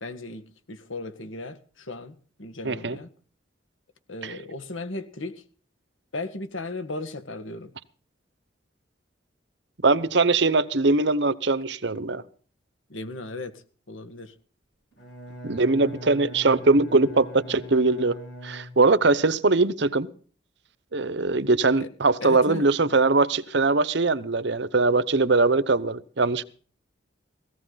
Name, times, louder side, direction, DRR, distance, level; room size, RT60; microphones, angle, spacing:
voice 1, 0.0-3.1 4.1-5.4 6.1-7.7 12.9-14.3 21.8-21.9 22.2-22.7, left 2 dB, 85° left, 1.8 m, -36 dB
voice 2, 2.6-3.0 4.2-4.3 9.8-12.2 15.4-18.1 18.4-20.1 20.9-26.4, right 3 dB, 65° right, 0.9 m, -21 dB
Bowed string instrument, 14.9-19.2, equal, 65° left, 7.4 m, -42 dB
18.0 x 15.0 x 4.1 m
head